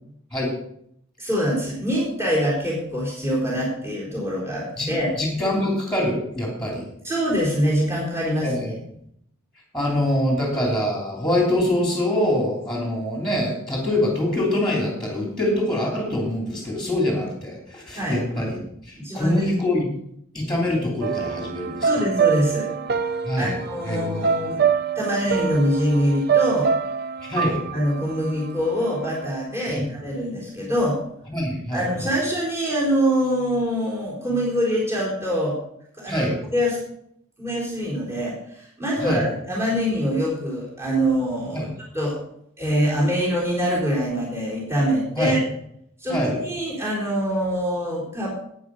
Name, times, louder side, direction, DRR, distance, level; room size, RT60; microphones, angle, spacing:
voice 1, 1.2-5.2 7.0-8.7 17.9-18.2 19.0-19.4 21.9-22.7 23.3-24.6 25.0-26.7 27.7-31.0 31.7-35.6 36.0-36.8 37.4-41.7 41.9-42.2 42.6-45.4 46.0-48.4, equal, 15° right, -4 dB, 3.8 m, -24 dB
voice 2, 5.1-6.8 8.4-8.7 9.7-19.9 20.3-21.9 23.2-23.6 23.9-24.3 27.3-27.6 29.7-29.8 31.3-32.1 36.1-36.4 39.0-39.3 41.5-41.7 45.1-45.4 46.1-46.4, left 1 dB, 5° left, -1 dB, 3.0 m, -24 dB
sound 1, 21.0-29.3, right 6 dB, 50° right, 0.5 m, -25 dB
11.0 x 9.3 x 5.4 m, 0.72 s
head